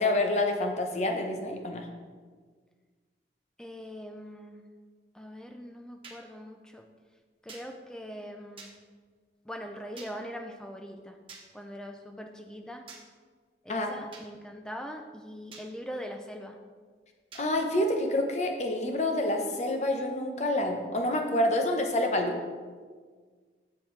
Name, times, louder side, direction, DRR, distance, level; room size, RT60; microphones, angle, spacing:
voice 1, 0.0-1.9 13.7-13.9 17.4-22.4, left 1 dB, 40° left, 3 dB, 0.8 m, -27 dB
voice 2, 3.6-4.6 5.1-6.9 7.4-8.7 9.4-11.2 11.5-12.9 13.6-16.6, equal, 5° left, 4 dB, 0.4 m, -42 dB
sound 1, 6.0-6.2 7.5-7.7 8.6-8.7 10.0-10.1 11.3-11.4 12.9-13.0 14.1-14.3 15.5-15.7 17.3-17.5, right 4 dB, 30° right, 1.0 m, -46 dB
7.4 x 7.4 x 3.2 m, 1.5 s
head